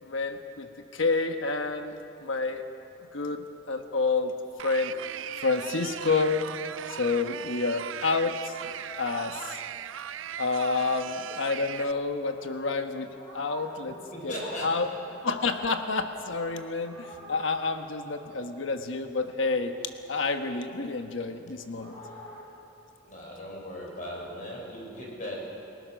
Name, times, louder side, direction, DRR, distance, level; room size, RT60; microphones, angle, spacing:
voice 1, 0.0-1.9 2.2-2.6 3.1-4.3 4.6-4.9 5.4-6.5 6.9-8.6 9.0-9.6 10.4-14.0 14.2-14.3 14.6-14.9 15.2-19.7 20.1-21.9, left 3 dB, 75° left, 6 dB, 1.2 m, -29 dB
sound 1, 4.6-11.9, right 9 dB, 75° right, 0.5 m, -38 dB
sound 2, 9.7-19.1 19.4-22.4, left 1 dB, 20° left, 6.3 m, -49 dB
voice 2, 14.1-15.1 23.0-25.4, equal, 40° left, -2 dB, 5.8 m, -38 dB
29.0 x 17.5 x 6.3 m, 2.8 s
head